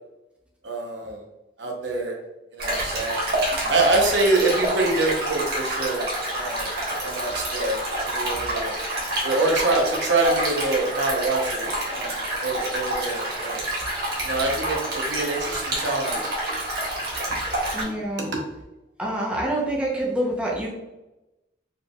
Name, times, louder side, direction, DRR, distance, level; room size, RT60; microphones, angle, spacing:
voice 1, 0.6-1.2 1.6-2.1 2.6-3.2 3.7-6.7 7.0-7.8 8.1-8.7 9.2-12.1 12.4-13.6 14.2-16.2 18.2-18.3, right 2 dB, 80° right, 1 dB, 0.9 m, -25 dB
Stream, 2.6-17.8, right 1 dB, 60° right, 1.4 m, -28 dB
voice 2, 17.7-18.3 19.0-20.7, right 1 dB, 5° right, -4 dB, 0.8 m, -26 dB
4.5 x 3.4 x 2.4 m, 0.98 s
head